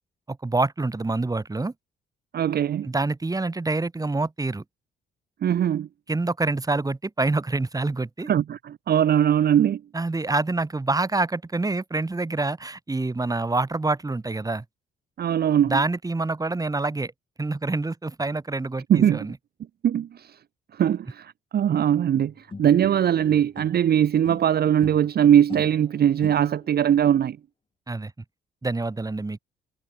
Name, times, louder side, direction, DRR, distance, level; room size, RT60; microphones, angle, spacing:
voice 1, 0.3-1.7 2.8-4.6 6.1-8.3 9.9-14.6 15.6-17.1 17.4-19.4 27.9-28.1 28.6-29.4, right 3 dB, 20° right, 2.6 m, -26 dB
voice 2, 2.3-2.9 5.4-5.9 8.3-9.8 15.2-15.8 18.9-19.3 19.8-20.3 20.7-22.3 22.6-27.4, right 9 dB, 50° right, 0.9 m, -21 dB
sound 1, 22.1-23.9 24.2-26.8, left 3 dB, 25° left, 5.3 m, -42 dB
cardioid pair, 90°, 20 cm